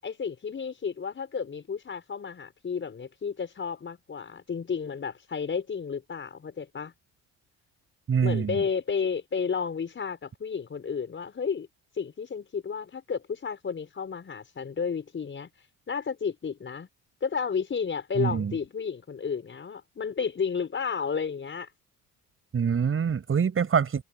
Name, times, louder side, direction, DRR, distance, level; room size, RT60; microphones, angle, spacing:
voice 1, 0.0-6.9 8.2-11.7 12.0-15.5 15.9-16.9 17.2-21.7, left 6 dB, 30° left, 5.9 m, -32 dB
voice 2, 8.1-8.6 18.2-18.5 22.5-24.0, right 6 dB, 35° right, 7.6 m, -25 dB
cardioid pair, 115°, 36 cm